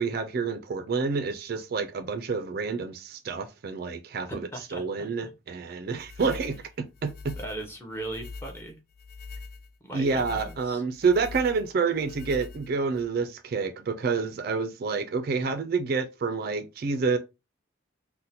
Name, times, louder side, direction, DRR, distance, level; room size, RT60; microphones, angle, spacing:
voice 1, 0.0-7.3 9.9-17.2, right 4 dB, 50° right, 0.3 m, -28 dB
voice 2, 4.3-5.3 6.2-6.3 7.4-8.8 9.8-10.8, right 1 dB, 10° left, 0.7 m, -39 dB
sound 1, 5.9-13.1, left 4 dB, 50° left, 0.4 m, -43 dB
2.7 x 2.1 x 4.0 m
head